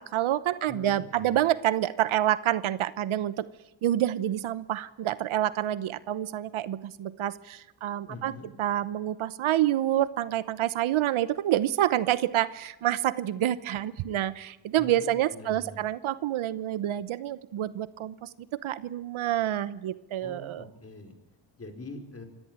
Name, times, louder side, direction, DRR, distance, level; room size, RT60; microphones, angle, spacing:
voice 1, 0.0-3.4 3.8-8.3 8.6-18.3 18.6-20.7, right 12 dB, 85° right, 16 dB, 1.0 m, -28 dB
voice 2, 0.7-1.4 8.1-8.5 14.8-15.8 20.2-21.1 21.5-22.3, left 2 dB, 30° left, 5 dB, 4.9 m, -44 dB
25.5 x 17.0 x 9.0 m, 0.96 s
cardioid pair, 90°, 47 cm